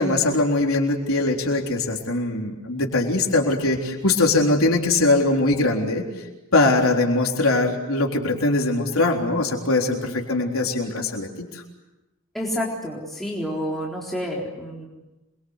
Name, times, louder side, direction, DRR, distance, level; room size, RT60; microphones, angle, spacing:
voice 1, 0.0-6.0 6.5-11.6, left 2 dB, 85° left, 1 dB, 3.9 m, -21 dB
voice 2, 12.3-14.9, equal, ahead, -4 dB, 3.9 m, -29 dB
27.5 x 23.5 x 8.1 m, 1.0 s
head